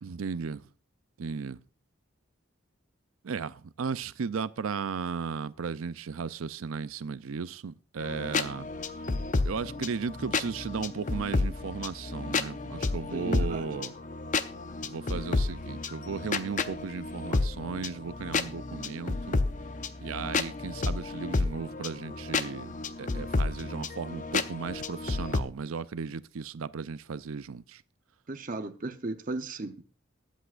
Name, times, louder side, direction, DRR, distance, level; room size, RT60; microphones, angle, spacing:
voice 1, 0.0-0.7 1.2-1.6 3.2-8.7 9.4-13.9 14.8-19.4 20.0-22.7 23.0-27.8, right 5 dB, 90° right, 0.5 m, -35 dB
sound 1, 8.0-25.4, left 3 dB, 40° left, 0.6 m, -31 dB
voice 2, 13.1-13.7 28.3-29.8, right 2 dB, 40° right, 0.7 m, -35 dB
20.0 x 8.3 x 2.5 m
head